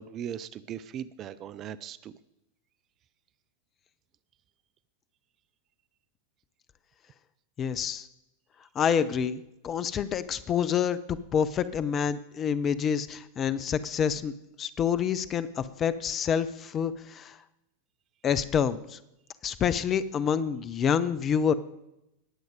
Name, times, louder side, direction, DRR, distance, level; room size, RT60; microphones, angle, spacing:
voice 1, 0.0-2.1, right 9 dB, 30° right, 16 dB, 0.5 m, -38 dB
voice 2, 7.6-8.1 8.7-14.3 14.6-17.4 18.2-19.0 19.4-21.5, left 7 dB, 25° left, 14 dB, 0.7 m, -27 dB
19.5 x 7.9 x 5.2 m, 0.86 s
figure-of-eight pair, 90°, 0 cm